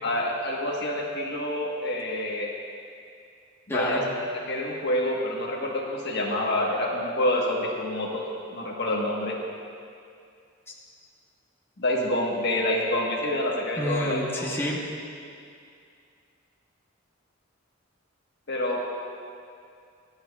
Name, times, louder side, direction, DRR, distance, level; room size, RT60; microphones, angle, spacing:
voice 1, 0.0-2.5 3.7-4.0 4.5-8.2 8.5-9.4 11.8-14.4 18.5-18.8, left 1 dB, 55° left, -1 dB, 1.3 m, -27 dB
voice 2, 3.7-4.0 13.8-14.8, equal, 10° left, -4 dB, 1.2 m, -28 dB
24.5 x 8.8 x 2.4 m, 2.4 s
head